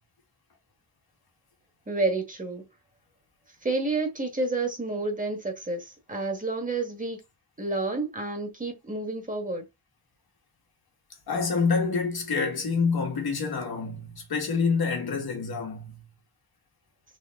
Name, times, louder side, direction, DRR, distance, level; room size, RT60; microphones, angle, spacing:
voice 1, 1.9-2.6 3.6-7.2 7.6-9.6, right 3 dB, 20° right, 1.2 m, -29 dB
voice 2, 11.3-16.0, left 5 dB, 75° left, 1.6 m, -27 dB
3.9 x 3.2 x 3.5 m
wide cardioid pair, 165°, 37 cm